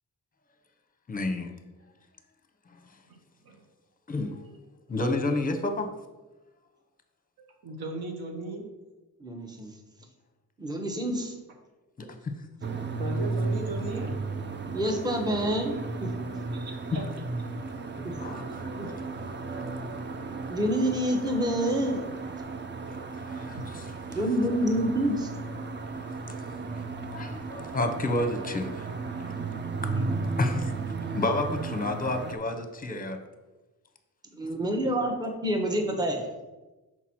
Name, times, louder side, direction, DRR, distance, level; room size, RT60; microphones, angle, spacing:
voice 1, 1.1-1.5 4.1-4.3 4.9-5.9 12.0-12.1 18.0-18.5 23.2-23.6 26.7-26.8 27.1-28.9 30.4-30.7 31.1-33.2, left 2 dB, 25° left, 7 dB, 0.8 m, -29 dB
voice 2, 7.6-8.7 13.0-14.1 16.3-17.0 23.5-23.7, right 2 dB, 75° right, 3 dB, 1.3 m, -37 dB
voice 3, 9.2-9.7 10.6-11.3 14.7-15.7 16.0-16.1 18.0-18.5 18.8-18.9 20.5-22.0 24.1-25.3 29.9-30.0 34.4-36.3, equal, 10° right, 3 dB, 0.9 m, -27 dB
sound 1, 12.6-32.4, right 3 dB, 30° right, 0.5 m, -34 dB
5.9 x 4.5 x 4.3 m, 1.1 s
cardioid pair, 90°, 36 cm